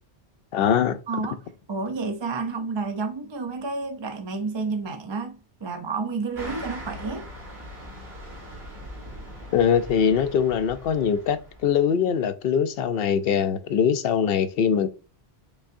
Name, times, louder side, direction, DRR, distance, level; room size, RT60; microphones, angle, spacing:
voice 1, 0.5-1.0 9.5-14.9, left 7 dB, 70° left, 0.8 m, -22 dB
voice 2, 1.1-1.4 1.7-7.3, right 4 dB, 35° right, 0.5 m, -30 dB
sound 1, 6.3-11.8, equal, 90° right, 2.0 m, -41 dB
5.3 x 3.5 x 2.6 m
omnidirectional pair, 1.0 m